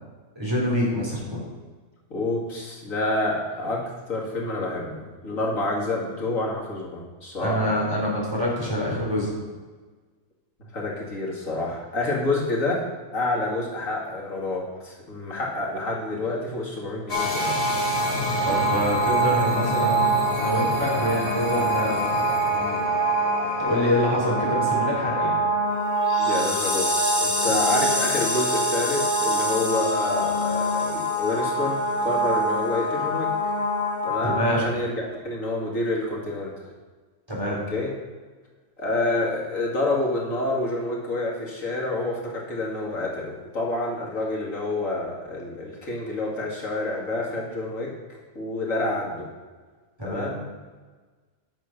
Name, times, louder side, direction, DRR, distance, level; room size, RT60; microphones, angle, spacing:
voice 1, 0.4-1.4 7.4-9.3 18.4-20.1 20.4-22.0 22.4-22.8 23.6-25.4 34.2-34.6 37.3-37.6 50.0-50.3, equal, 20° right, -5 dB, 3.9 m, -26 dB
voice 2, 2.1-3.8 4.1-7.8 10.7-12.9 13.1-17.8 26.2-33.3 34.0-36.7 37.5-37.9 38.8-47.9 48.4-49.3 50.0-50.4, left 2 dB, 85° left, -2 dB, 2.5 m, -28 dB
sound 1, 17.1-34.5, right 1 dB, 45° left, 2.3 m, -24 dB
11.0 x 6.4 x 5.9 m, 1.3 s
omnidirectional pair, 1.3 m